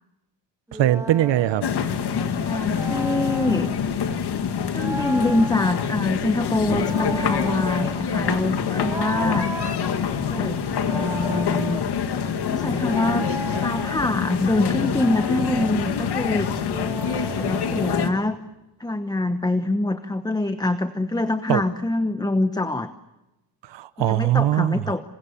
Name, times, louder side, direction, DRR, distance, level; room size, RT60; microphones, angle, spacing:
sound 1, 0.7-1.8 2.7-3.7 4.7-5.9 6.7-7.9 8.7-9.8 10.7-11.8 12.7-14.1 14.7-15.8 16.7-18.1, right 1 dB, 5° right, 1.9 m, -35 dB
voice 1, 0.7-1.6 21.5-21.6 23.7-24.8, right 13 dB, 85° right, 13 dB, 1.1 m, -21 dB
sound 2, 1.6-18.1, left 7 dB, 65° left, 2.2 m, -26 dB
voice 2, 2.4-3.7 4.7-9.5 10.3-11.9 12.4-13.3 13.6-16.5 17.4-18.4 18.8-22.9 24.0-25.0, left 2 dB, 10° left, 10 dB, 1.0 m, -25 dB
Thunder, 5.3-16.9, left 3 dB, 35° left, 4.6 m, -43 dB
27.5 x 27.0 x 7.1 m, 0.97 s
cardioid pair, 115°, 43 cm